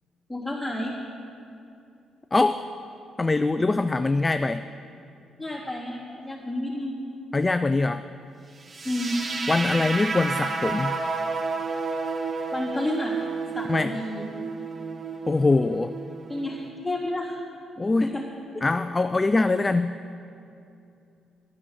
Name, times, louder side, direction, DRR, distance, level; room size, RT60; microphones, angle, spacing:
voice 1, 0.3-0.9 5.4-7.0 8.8-9.2 12.5-13.1 13.5-14.2 16.3-17.4 18.0-18.2 18.5-18.6, left 1 dB, 5° left, -6 dB, 3.3 m, -30 dB
voice 2, 2.3-2.6 3.2-4.7 7.3-8.1 9.5-11.0 13.7-13.9 15.3-16.0 17.8-18.2 18.6-20.0, left 3 dB, 20° left, 11 dB, 0.3 m, -23 dB
sound 1, 8.7-16.7, right 4 dB, 35° right, 1.0 m, -31 dB
11.0 x 9.9 x 6.5 m, 2.7 s
cardioid pair, 90°, 0 cm